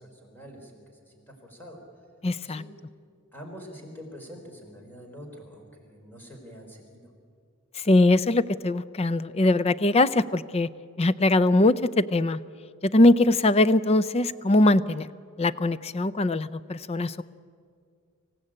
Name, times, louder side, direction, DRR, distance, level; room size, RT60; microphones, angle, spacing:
voice 1, 0.0-1.8 2.4-2.7 3.3-7.1, equal, 10° left, 1 dB, 4.0 m, -45 dB
voice 2, 2.2-2.6 7.8-10.7 11.0-12.4 12.8-15.1 15.4-17.2, left 2 dB, 30° left, 16 dB, 0.5 m, -21 dB
25.5 x 15.5 x 8.7 m, 2.2 s
head